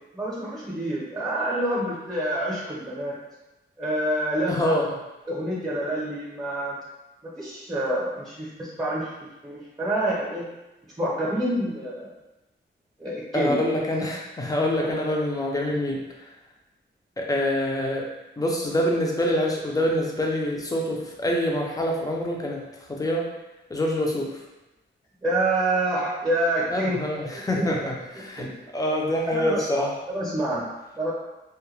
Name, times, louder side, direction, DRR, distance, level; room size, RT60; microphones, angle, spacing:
voice 1, 0.1-3.2 3.8-4.7 5.3-6.8 7.4-9.1 9.4-10.4 11.0-12.1 13.0-13.6 14.6-14.7 25.2-27.2 27.5-27.7 28.2-28.5 29.3-30.7 30.9-31.1, right 1 dB, 20° right, -6 dB, 0.7 m, -27 dB
voice 2, 4.5-4.9 13.3-16.0 17.2-18.1 18.4-23.3 23.7-24.4 26.7-29.9, left 1 dB, 20° left, -1 dB, 0.4 m, -26 dB
2.2 x 2.2 x 3.1 m, 1.0 s
wide cardioid pair, 120°, 20 cm